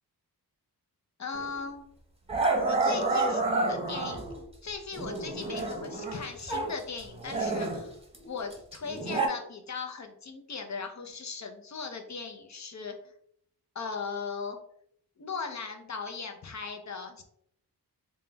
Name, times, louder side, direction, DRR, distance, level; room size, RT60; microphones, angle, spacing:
voice 1, 1.2-1.8 2.7-3.4 3.7-4.2 4.6-7.9 8.2-13.0 13.7-14.6 15.2-17.2, left 5 dB, 45° left, 4 dB, 0.7 m, -38 dB
Growling, 1.3-1.5 2.3-4.4 4.9-6.7 7.0-9.3, right 3 dB, 15° right, 0.8 m, -29 dB
3.7 x 2.3 x 3.9 m, 0.68 s
wide cardioid pair, 95°, 40 cm